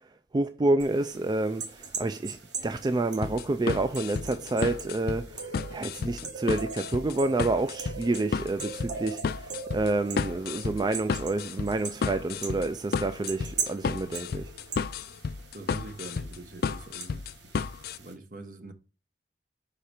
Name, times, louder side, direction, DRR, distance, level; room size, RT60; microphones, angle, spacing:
voice 1, 0.0-14.5, right 2 dB, 25° right, 0.3 m, -29 dB
sound 1, 0.8-18.1, right 5 dB, 80° right, 1.8 m, -41 dB
sound 2, 3.2-18.0, left 5 dB, 60° left, 0.4 m, -32 dB
voice 2, 15.5-17.2 18.0-18.7, right 2 dB, 50° right, 1.0 m, -43 dB
5.7 x 4.9 x 4.2 m
head